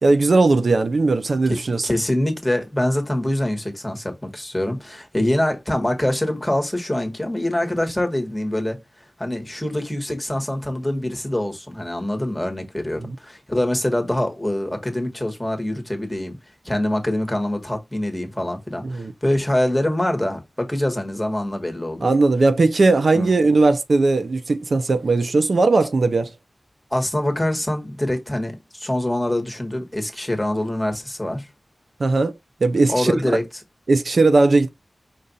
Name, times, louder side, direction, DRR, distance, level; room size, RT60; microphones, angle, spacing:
voice 1, 0.0-1.9 13.0-13.1 18.8-19.1 22.0-26.3 32.0-32.3 32.6-33.4 33.9-34.7, right 3 dB, 70° right, 0.5 m, -18 dB
voice 2, 1.8-8.8 9.2-16.4 16.6-22.1 23.1-23.3 26.9-31.5 32.9-33.4, left 1 dB, 10° left, 1.3 m, -24 dB
5.3 x 2.5 x 4.0 m
wide cardioid pair, 85°, 0 cm